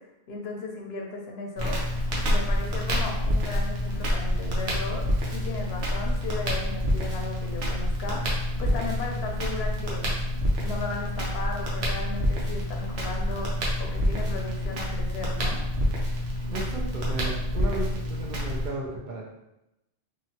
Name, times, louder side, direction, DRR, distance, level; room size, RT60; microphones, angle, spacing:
voice 1, 0.0-10.0 10.6-15.6, left 3 dB, 70° left, 1 dB, 0.8 m, -36 dB
Crackle, 1.6-18.7, equal, 70° right, 1.0 m, -27 dB
voice 2, 16.5-19.3, right 2 dB, 55° right, -4 dB, 0.6 m, -34 dB
2.9 x 2.3 x 2.8 m, 0.90 s
omnidirectional pair, 1.1 m